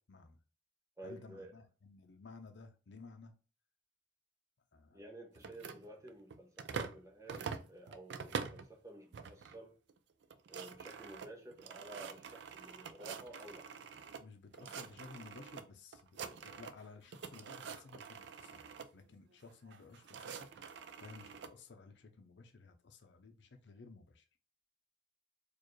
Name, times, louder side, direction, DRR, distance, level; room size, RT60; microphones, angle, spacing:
voice 1, 0.1-0.4 1.0-3.3 4.7-5.0 14.2-20.5 21.0-24.2, left 4 dB, 70° left, 0.5 m, -55 dB
voice 2, 1.0-1.5 4.9-9.8 10.5-13.7, right 1 dB, 15° right, 0.7 m, -52 dB
sound 1, 5.4-7.0 7.3-8.7 9.1-9.6 9.9-10.0 10.2-14.2 14.5-15.6 15.9-16.8 17.1-18.9 19.7-21.5, right 6 dB, 70° right, 0.4 m, -46 dB
4.4 x 2.4 x 3.1 m
head